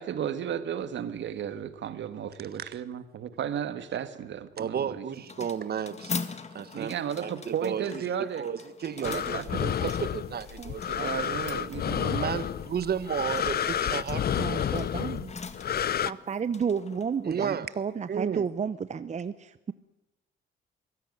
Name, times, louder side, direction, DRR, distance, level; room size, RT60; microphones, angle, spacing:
voice 1, 0.0-5.1 6.7-8.5 9.0-9.6 11.0-12.2, right 9 dB, 70° right, 12 dB, 1.9 m, -34 dB
voice 2, 4.6-6.2 6.5-7.9 8.4-11.4 12.1-14.9 17.2-17.7 18.1-18.5, right 8 dB, 50° right, 15 dB, 1.6 m, -33 dB
sound 1, 5.1-18.2, left 4 dB, 35° left, 2.1 m, -43 dB
sound 2, 9.0-16.1, left 9 dB, 50° left, 0.8 m, -30 dB
voice 3, 14.3-15.4 16.0-19.7, right 6 dB, 35° right, 14 dB, 0.8 m, -32 dB
23.5 x 16.5 x 9.7 m, 0.98 s
cardioid pair, 90°, 20 cm